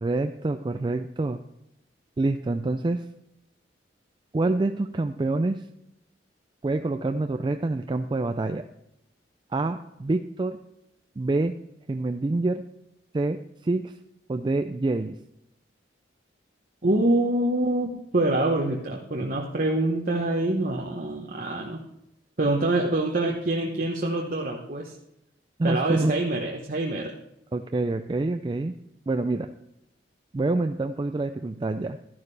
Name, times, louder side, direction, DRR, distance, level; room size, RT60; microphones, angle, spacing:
voice 1, 0.0-1.4 2.2-3.0 4.3-5.6 6.6-8.6 9.5-10.6 11.2-11.5 11.9-12.6 13.1-13.9 14.3-15.2 25.6-26.1 27.5-28.7 29.1-29.5 30.3-32.0, right 2 dB, 25° right, 7 dB, 0.3 m, -26 dB
voice 2, 16.8-21.8 22.4-24.9 25.6-27.1, right 2 dB, 50° right, 0 dB, 1.0 m, -25 dB
12.0 x 11.0 x 3.3 m, 0.83 s
head